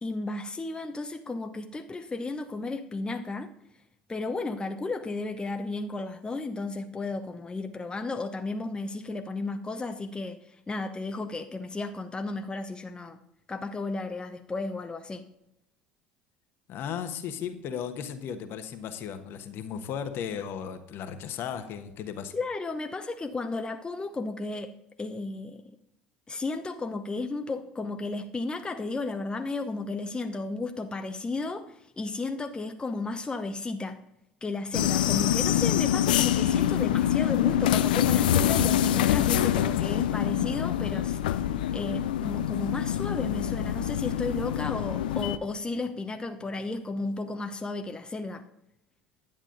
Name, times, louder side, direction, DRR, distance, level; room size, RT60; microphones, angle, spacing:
voice 1, 0.0-3.5 4.1-13.2 13.5-15.2 22.3-24.7 25.0-25.6 26.3-34.0 34.4-41.4 41.7-48.4, left 3 dB, 20° left, 6 dB, 0.8 m, -33 dB
voice 2, 16.7-22.3, left 8 dB, 55° left, 8 dB, 1.2 m, -35 dB
sound 1, 34.7-45.4, left 11 dB, 80° left, 0.4 m, -25 dB
11.0 x 8.8 x 3.9 m, 0.81 s
hypercardioid pair, 70°, 5 cm